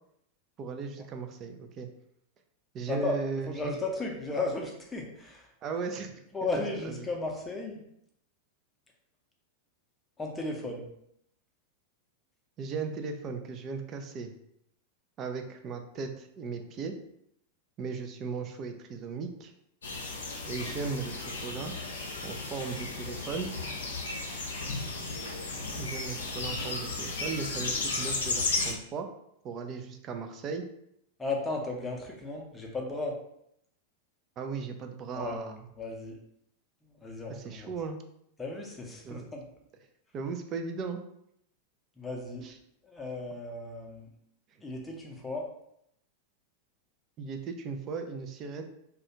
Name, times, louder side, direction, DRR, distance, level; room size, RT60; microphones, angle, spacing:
voice 1, 0.6-1.9 2.7-3.7 5.6-6.1 6.5-6.9 12.6-14.3 15.2-17.0 17.8-19.5 20.5-21.7 22.2-23.6 25.8-29.1 29.4-30.7 34.4-35.7 37.4-38.0 39.0-39.2 40.1-41.0 42.4-42.5 47.2-48.6, right 5 dB, 30° right, 6 dB, 0.4 m, -37 dB
voice 2, 2.9-3.2 3.5-5.5 6.3-7.8 10.2-10.9 31.2-33.2 35.1-35.4 35.8-36.2 36.8-37.7 38.4-39.4 42.0-42.5 42.8-44.1 44.6-45.5, left 2 dB, 10° left, 0 dB, 0.6 m, -35 dB
sound 1, 19.8-28.7, left 3 dB, 65° left, 0.5 m, -34 dB
2.4 x 2.3 x 2.9 m, 0.74 s
figure-of-eight pair, 90°, 0 cm